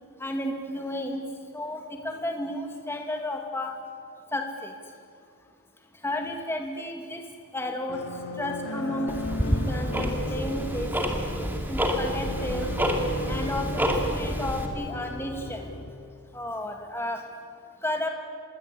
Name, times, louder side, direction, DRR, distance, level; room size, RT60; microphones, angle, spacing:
voice 1, 0.2-1.2 1.5-3.7 4.3-4.7 6.0-7.2 7.5-8.0 8.4-9.2 9.5-10.9 11.7-12.7 13.3-15.7 16.3-17.2 17.8-18.1, left 1 dB, 10° left, 3 dB, 2.3 m, -32 dB
sound 1, 7.9-15.9, left 1 dB, 55° left, 2.3 m, -35 dB
Tick-tock, 9.1-14.7, equal, 10° right, 2.3 m, -28 dB
26.5 x 21.5 x 8.5 m, 2.4 s
head